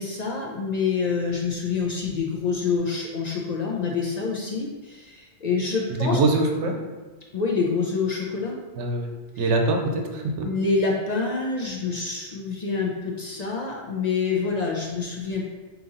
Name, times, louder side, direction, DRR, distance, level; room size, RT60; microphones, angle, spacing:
voice 1, 0.0-6.2 7.3-8.6 10.4-15.5, left 4 dB, 55° left, -1 dB, 0.5 m, -26 dB
voice 2, 5.9-6.7 8.8-9.1 9.4-10.5, right 2 dB, 90° right, 3 dB, 0.9 m, -23 dB
3.8 x 2.9 x 3.8 m, 1.3 s
omnidirectional pair, 1.2 m